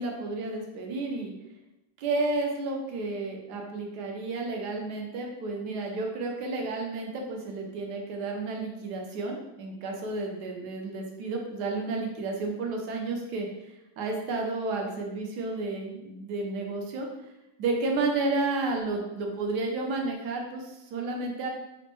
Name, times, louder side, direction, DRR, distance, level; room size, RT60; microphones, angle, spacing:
voice 1, 0.0-1.3 2.0-17.1 17.6-21.5, right 3 dB, 70° right, 1 dB, 1.1 m, -31 dB
4.1 x 2.2 x 2.9 m, 0.93 s
omnidirectional pair, 2.1 m